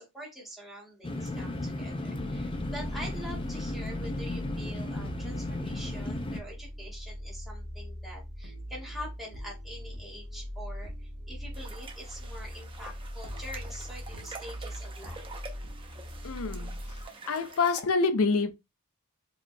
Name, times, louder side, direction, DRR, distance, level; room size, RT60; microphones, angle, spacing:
voice 1, 0.0-15.3, equal, ahead, 1.7 m, -45 dB
sound 1, 1.0-6.4, left 1 dB, 25° left, 0.5 m, -35 dB
sound 2, 2.2-17.1, equal, 70° right, 1.2 m, -41 dB
sound 3, 11.5-17.8, right 3 dB, 25° right, 0.7 m, -47 dB
voice 2, 16.2-16.8 17.3-18.5, left 4 dB, 70° left, 0.5 m, -26 dB
4.8 x 2.9 x 2.2 m
head